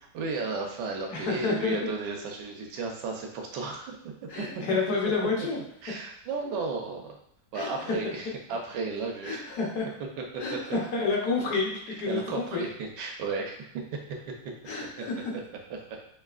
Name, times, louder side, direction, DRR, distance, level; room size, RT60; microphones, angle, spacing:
voice 1, 0.1-3.9 4.4-4.5 5.8-7.2 7.5-9.4 11.0-11.1 12.1-13.7, right 4 dB, 80° right, 1 dB, 1.3 m, -34 dB
voice 2, 1.1-1.8 4.3-5.6 7.5-8.0 9.2-9.9 10.4-11.7 12.0-12.6 14.7-15.1, left 4 dB, 65° left, -2 dB, 1.4 m, -29 dB
5.4 x 2.7 x 2.4 m, 0.72 s
omnidirectional pair, 1.9 m